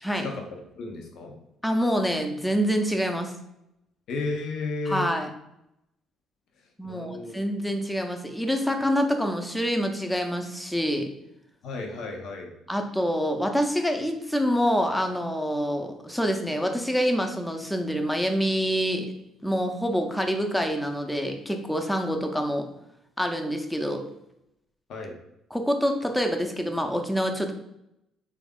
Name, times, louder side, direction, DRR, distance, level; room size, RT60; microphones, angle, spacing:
voice 1, 0.8-1.3 4.1-5.1 6.8-7.4 11.6-12.5 24.9-25.2, left 3 dB, 65° left, 2 dB, 0.6 m, -33 dB
voice 2, 1.6-3.3 4.9-5.3 6.8-11.1 12.7-19.1 19.4-22.7 23.2-24.0 25.5-27.5, equal, 5° left, 4 dB, 0.6 m, -26 dB
3.3 x 2.4 x 3.5 m, 0.83 s
hypercardioid pair, 55°, 0 cm